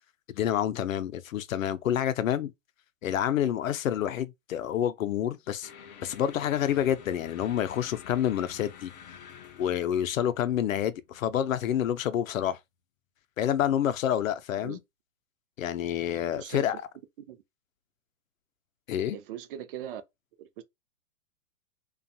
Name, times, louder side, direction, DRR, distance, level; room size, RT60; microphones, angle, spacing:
voice 1, 0.3-2.5 3.0-5.7 6.0-8.9 9.6-12.6 13.4-14.8 15.6-16.8 18.9-19.2, left 10 dB, 85° left, 0.5 m, -28 dB
sound 1, 5.6-12.1, left 8 dB, 35° left, 0.4 m, -50 dB
voice 2, 16.4-16.8 17.2-17.4 19.1-20.0 20.4-20.6, right 11 dB, 45° right, 0.5 m, -40 dB
2.5 x 2.3 x 2.6 m
hypercardioid pair, 125°, 39 cm